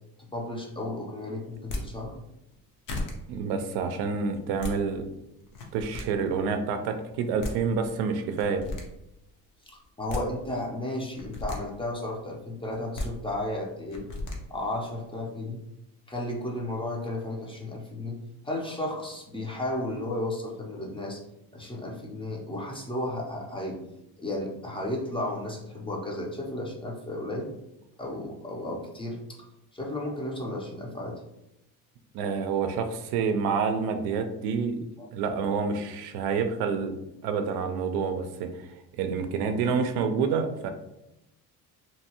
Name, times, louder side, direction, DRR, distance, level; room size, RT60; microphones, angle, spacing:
voice 1, 0.3-2.2 9.7-14.1 14.5-15.6 16.1-21.2 21.5-23.8 24.2-27.5 28.0-29.2 29.7-31.2, left 1 dB, 15° left, -1 dB, 0.5 m, -33 dB
sound 1, 1.5-1.8 2.5-2.6 2.9-3.1 4.3-4.7 5.5-6.0 7.1-7.2 7.4-7.5 8.4-8.8 9.8-10.2 11.1-11.6 12.7-13.1 13.9-14.4, left 2 dB, 55° left, 0.8 m, -34 dB
voice 2, 3.3-5.0 5.7-8.6 32.1-34.8 35.1-36.9 37.2-40.7, right 5 dB, 80° right, 6 dB, 0.5 m, -28 dB
2.8 x 2.2 x 2.9 m, 0.88 s
cardioid pair, 105°, 37 cm